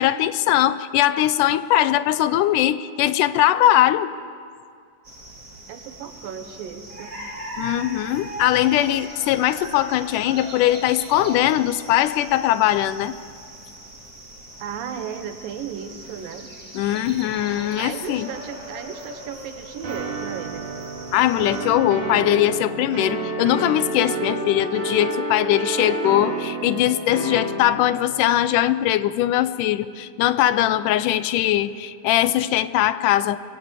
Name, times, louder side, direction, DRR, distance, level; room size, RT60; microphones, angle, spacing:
voice 1, 0.0-4.1 7.6-13.2 16.8-18.3 21.1-33.4, left 13 dB, 80° left, 14 dB, 2.1 m, -20 dB
sound 1, 5.0-21.7, right 1 dB, 25° right, 2.8 m, -40 dB
voice 2, 5.7-7.1 14.6-16.5 17.8-20.7, right 8 dB, 90° right, 8 dB, 3.0 m, -35 dB
sound 2, 19.8-28.1, right 2 dB, 65° right, 4.2 m, -29 dB
22.5 x 16.5 x 7.4 m, 2.2 s
omnidirectional pair, 3.9 m